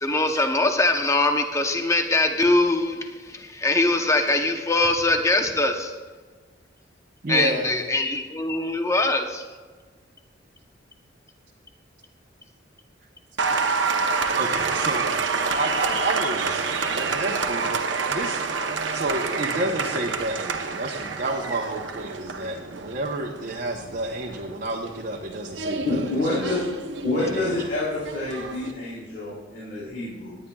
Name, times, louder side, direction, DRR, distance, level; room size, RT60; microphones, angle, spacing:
voice 1, 0.0-5.9 7.3-9.4, left 2 dB, 15° left, 5 dB, 0.8 m, -22 dB
voice 2, 7.2-7.7 14.3-15.2 15.5-18.4 18.9-26.5 27.2-27.7, right 2 dB, 45° right, -1 dB, 0.9 m, -30 dB
Applause, 13.4-28.7, right 4 dB, 75° right, 0.8 m, -28 dB
voice 3, 25.8-26.7 27.0-30.4, left 2 dB, 70° left, -9 dB, 3.6 m, -27 dB
18.5 x 10.0 x 2.3 m, 1.4 s
head